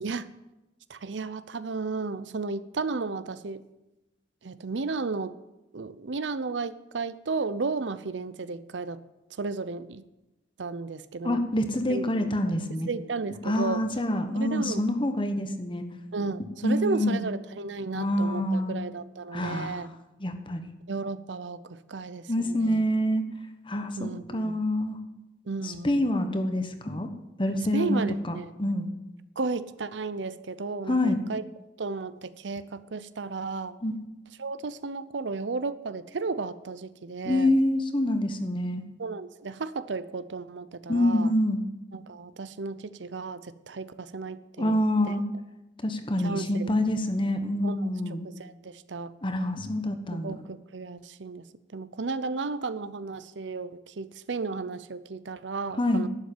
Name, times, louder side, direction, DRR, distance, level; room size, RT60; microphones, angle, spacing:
voice 1, 0.9-3.6 4.4-5.3 5.7-9.0 9.4-10.0 10.6-11.4 11.9-12.3 12.6-13.8 14.4-14.9 16.1-19.9 20.9-22.8 24.0-24.5 25.5-26.0 27.7-28.5 29.4-31.4 31.8-33.8 34.4-37.5 39.0-41.3 41.9-44.8 45.1-45.2 46.2-46.7 47.6-47.9 48.4-49.1 50.2-51.5 51.7-56.1, right 4 dB, 90° right, 15 dB, 0.7 m, -33 dB
voice 2, 11.2-12.9 13.4-15.8 16.6-17.2 17.9-18.7 19.3-19.9 20.2-20.6 22.3-23.2 23.7-25.0 25.6-27.1 27.4-28.9 30.9-31.2 33.8-34.0 37.2-38.8 40.9-41.7 44.6-45.2 45.8-48.3 49.2-50.4 55.8-56.0, left 1 dB, 30° left, 8 dB, 1.2 m, -26 dB
11.5 x 7.4 x 9.0 m, 0.97 s
head